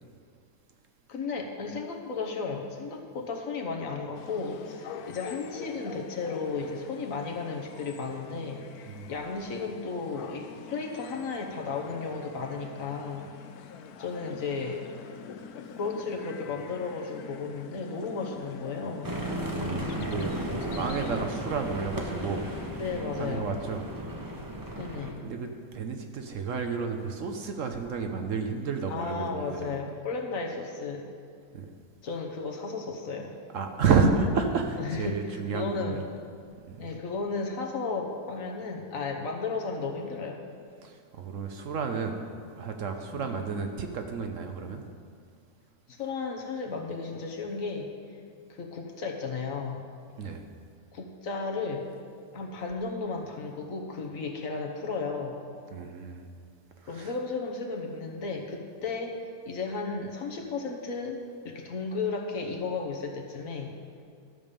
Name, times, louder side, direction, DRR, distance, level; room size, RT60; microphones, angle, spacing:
voice 1, 1.1-13.3 14.0-14.8 15.8-19.1 22.7-23.5 24.8-25.2 28.9-31.0 32.0-33.3 34.8-35.2 35.5-36.0 36.8-40.4 43.1-43.3 45.9-47.9 48.5-49.8 50.9-51.9 52.3-55.4 56.8-63.7, left 4 dB, 65° left, 2 dB, 1.4 m, -34 dB
sound 1, 4.1-22.7, left 7 dB, 80° left, 1.1 m, -45 dB
sound 2, 19.0-25.1, right 1 dB, 15° right, 0.8 m, -35 dB
voice 2, 19.5-22.4 23.2-23.8 25.2-29.6 31.5-31.7 33.5-36.0 36.7-36.9 40.8-42.2 42.6-44.9 50.2-50.5 55.7-56.3 56.8-57.1, right 5 dB, 60° right, 5 dB, 1.1 m, -31 dB
12.5 x 7.0 x 5.3 m, 2.2 s
omnidirectional pair, 1.6 m